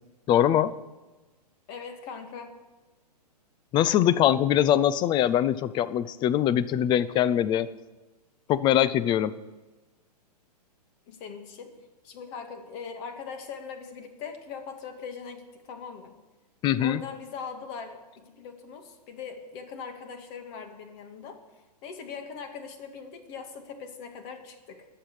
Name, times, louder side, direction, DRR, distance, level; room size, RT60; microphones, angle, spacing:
voice 1, 0.3-0.7 3.7-7.7 8.5-9.3 16.6-17.0, left 11 dB, 20° left, 17 dB, 0.5 m, -22 dB
voice 2, 1.7-2.5 11.1-11.7 12.0-16.2 16.8-21.4 21.8-24.9, left 6 dB, 40° left, 6 dB, 2.1 m, -41 dB
21.5 x 7.8 x 4.9 m, 1.2 s
hypercardioid pair, 125°, 21 cm